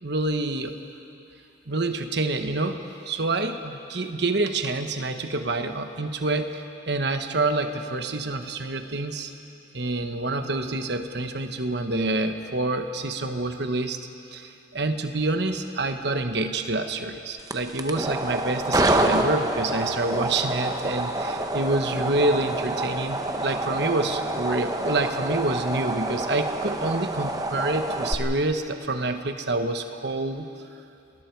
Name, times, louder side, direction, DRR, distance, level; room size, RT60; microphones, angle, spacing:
voice 1, 0.0-0.7 1.7-9.3 9.7-14.0 14.3-30.5, right 2 dB, 55° right, 7 dB, 1.2 m, -27 dB
sound 1, 17.4-28.1, right 1 dB, 20° right, 0.9 m, -27 dB
29.5 x 20.5 x 4.7 m, 2.7 s
head